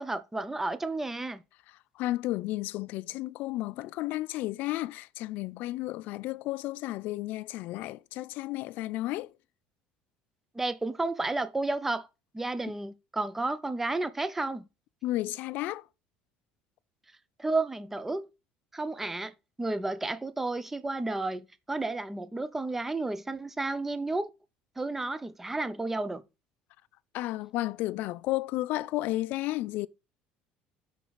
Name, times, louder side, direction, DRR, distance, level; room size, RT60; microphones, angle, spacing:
voice 1, 0.0-1.4 10.5-12.1 12.3-14.7 17.4-18.3 18.7-19.3 19.6-24.3 24.8-26.2, right 2 dB, 10° right, 0.5 m, -32 dB
voice 2, 1.7-9.3 15.0-15.9 27.1-29.9, left 17 dB, 60° left, 0.3 m, -33 dB
5.9 x 4.0 x 4.5 m
cardioid pair, 145°, 3 cm